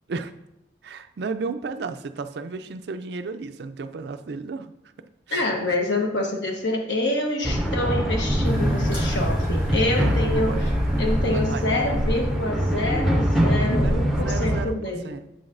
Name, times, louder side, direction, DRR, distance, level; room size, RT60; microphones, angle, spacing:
voice 1, 0.8-4.7 5.3-5.5 10.0-10.7 11.3-11.6 13.8-13.9 14.2-15.2, right 4 dB, 55° right, 9 dB, 0.4 m, -33 dB
voice 2, 5.3-10.5 11.0-15.1, left 2 dB, 65° left, 2 dB, 1.1 m, -26 dB
sound 1, 7.4-14.6, equal, ahead, 0.6 m, -23 dB
sound 2, 8.4-13.5, right 1 dB, 80° left, 2.1 m, -44 dB
7.7 x 5.9 x 2.5 m, 0.85 s
head